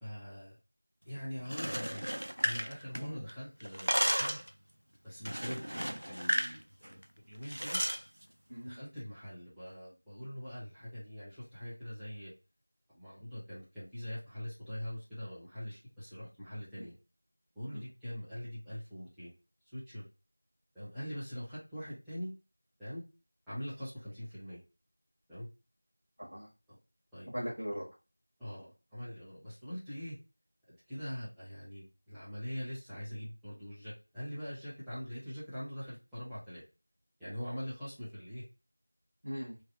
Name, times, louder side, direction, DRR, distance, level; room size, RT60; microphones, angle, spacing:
voice 1, 0.0-0.6 1.0-2.0 2.4-4.4 5.0-7.0 7.3-7.8 8.6-12.3 12.9-17.0 17.5-19.3 19.7-20.1 20.7-22.3 22.8-23.0 23.5-24.6 25.3-25.5 26.7-26.8 27.1-27.3 28.4-30.2 30.7-36.6 37.2-38.4, equal, ahead, -18 dB, 0.3 m, -43 dB
sound 1, 1.4-3.3 3.6-4.5 5.3-6.6 6.8-7.0 7.5-8.0, equal, 85° right, 0.3 m, -33 dB
voice 2, 8.5-8.8 16.8-16.9 17.7-17.8 26.2-26.5 27.3-27.8 39.2-39.6, equal, 60° right, -5 dB, 1.3 m, -39 dB
3.1 x 2.4 x 2.9 m, 0.30 s
figure-of-eight pair, 180°, 0 cm